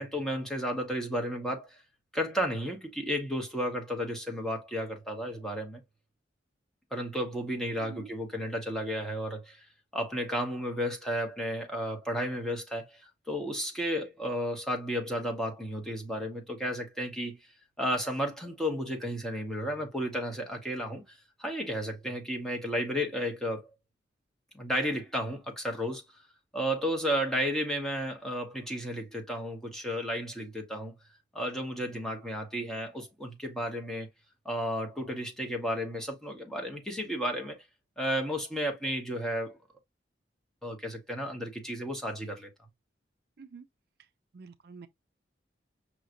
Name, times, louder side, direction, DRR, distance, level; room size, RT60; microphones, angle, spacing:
voice 1, 0.0-1.8 2.1-5.8 6.9-9.6 9.9-17.4 17.8-23.7 24.5-26.0 26.5-30.9 31.3-34.1 34.4-37.6 38.0-39.6 40.6-42.5, equal, 5° left, 1.1 m, -33 dB
voice 2, 7.8-8.1 43.4-43.7 44.3-44.9, right 4 dB, 60° right, 0.4 m, -47 dB
5.6 x 3.1 x 2.5 m
head